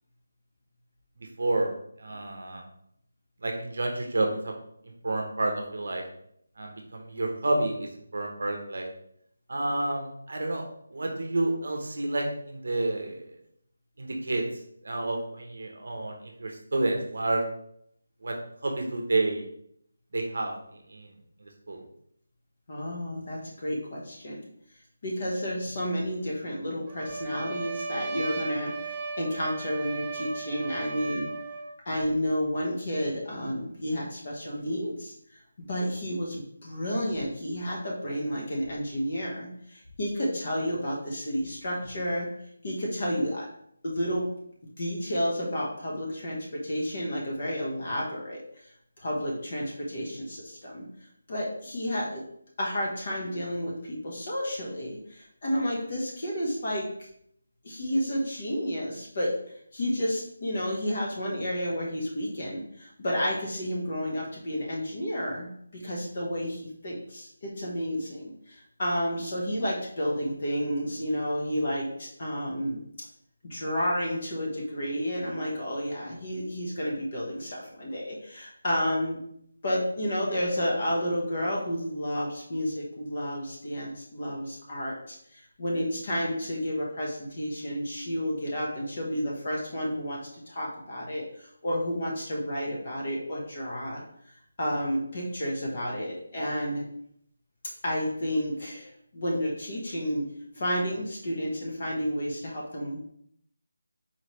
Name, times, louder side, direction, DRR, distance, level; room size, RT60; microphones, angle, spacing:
voice 1, 1.2-1.7 2.0-2.7 3.4-4.5 4.8-6.0 6.6-8.9 9.5-10.7 10.9-13.3 14.0-14.4 14.8-17.4 18.2-18.4 18.6-19.5 20.1-21.1 21.4-21.8, right 2 dB, 55° right, 2 dB, 0.7 m, -30 dB
voice 2, 22.7-24.4 25.0-31.3 31.9-35.4 35.7-42.3 42.6-43.5 43.8-44.3 44.8-48.7 49.0-52.2 52.6-57.1 57.6-59.3 59.7-72.8 73.5-79.2 79.6-90.2 90.5-94.0 94.6-96.8 97.8-100.2 100.5-103.0, equal, 30° left, -3 dB, 0.9 m, -31 dB
Trumpet, 26.9-31.7, right 3 dB, 10° right, 0.4 m, -36 dB
4.3 x 3.1 x 3.0 m, 0.69 s
figure-of-eight pair, 175°, 0 cm